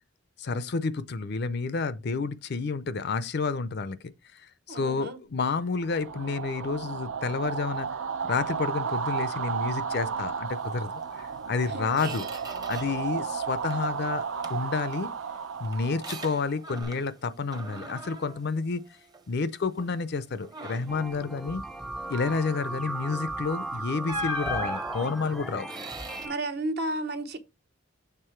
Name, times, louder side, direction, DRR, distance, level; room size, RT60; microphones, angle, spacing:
voice 1, 0.4-4.0 4.4-7.9 8.3-12.3 12.7-14.2 14.5-15.1 15.6-18.8 19.3-21.6 22.1-25.7, left 4 dB, 55° left, 0.5 m, -30 dB
voice 2, 4.7-5.2 11.7-12.2 26.2-27.4, right 2 dB, 55° right, 0.9 m, -33 dB
sound 1, 5.7-16.8, right 6 dB, 80° right, 0.6 m, -33 dB
Squeak, 11.2-11.3 11.7-13.1 13.4-14.0 14.4-17.2 17.5-19.4 19.8-20.0 20.4-21.1 23.2-23.4 24.1-26.3, equal, 20° right, 0.8 m, -40 dB
sound 2, 20.9-26.4, right 2 dB, ahead, 0.4 m, -36 dB
6.8 x 3.5 x 4.5 m
head